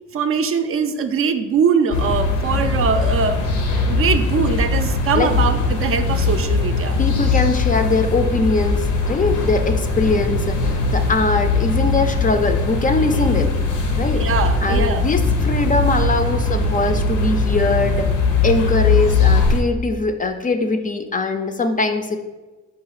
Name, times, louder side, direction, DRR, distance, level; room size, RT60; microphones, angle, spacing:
voice 1, 0.1-3.5 3.9-7.0 14.1-15.1, right 6 dB, 45° right, 7 dB, 0.4 m, -21 dB
sound 1, 1.9-19.6, left 3 dB, 80° left, 0.8 m, -20 dB
voice 2, 7.0-13.5 13.9-14.2 14.6-18.1 18.4-22.2, left 3 dB, 30° left, 7 dB, 0.4 m, -21 dB
4.8 x 2.3 x 4.7 m, 1.2 s
cardioid pair, 90°, 30 cm